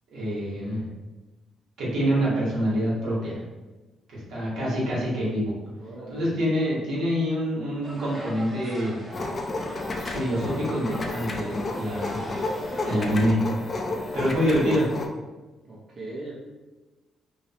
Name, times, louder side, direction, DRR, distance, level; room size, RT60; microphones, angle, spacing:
voice 1, 0.1-0.8 1.8-3.4 4.1-5.6 6.1-9.0 10.1-12.2 12.8-13.4 14.1-14.9, equal, 80° right, -6 dB, 1.0 m, -26 dB
voice 2, 5.8-6.4 15.7-16.3, right 2 dB, 45° right, -6 dB, 0.6 m, -39 dB
sound 1, 7.8-13.0, right 1 dB, 15° right, 0.8 m, -41 dB
sound 2, 9.1-15.1, left 2 dB, 35° left, 0.3 m, -31 dB
2.8 x 2.0 x 2.7 m, 1.2 s
cardioid pair, 90°, 0 cm